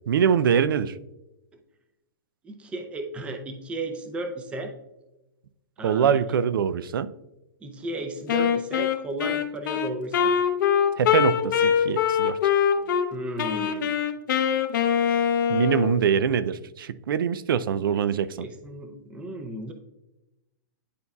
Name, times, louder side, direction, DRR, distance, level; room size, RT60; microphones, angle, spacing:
voice 1, 0.1-1.0 5.8-7.1 11.0-12.4 15.5-18.5, right 7 dB, 85° right, 0.4 m, -23 dB
voice 2, 2.4-4.7 5.8-6.2 7.6-10.4 13.1-13.9 18.4-19.7, right 2 dB, 10° right, 0.5 m, -34 dB
Wind instrument woodwind instrument, 8.3-13.1 13.4-16.0, left 8 dB, 65° left, 0.8 m, -23 dB
11.0 x 4.0 x 2.3 m
hypercardioid pair, 150°, 11 cm